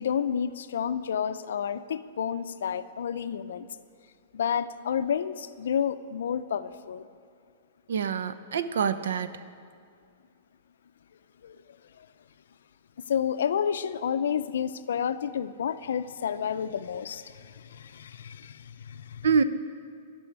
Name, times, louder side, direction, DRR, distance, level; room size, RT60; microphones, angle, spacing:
voice 1, 0.0-3.7 4.3-7.1 11.4-11.6 13.1-19.3, left 8 dB, 80° left, 13 dB, 0.5 m, -30 dB
voice 2, 7.9-9.3 19.2-19.4, right 6 dB, 80° right, 12 dB, 0.6 m, -25 dB
12.0 x 6.2 x 9.4 m, 2.3 s
supercardioid pair, 175°, 0 cm